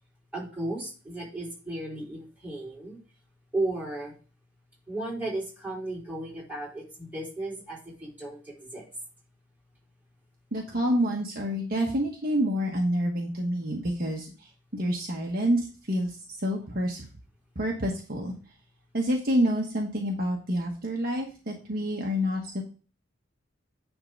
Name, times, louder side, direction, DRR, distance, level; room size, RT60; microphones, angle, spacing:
voice 1, 0.3-3.0 3.5-4.1 4.9-8.8, right 2 dB, 10° right, -5 dB, 4.2 m, -34 dB
voice 2, 10.5-17.1 17.5-18.3 18.9-22.6, equal, 50° right, 0 dB, 1.2 m, -28 dB
9.6 x 3.7 x 5.2 m, 0.36 s
head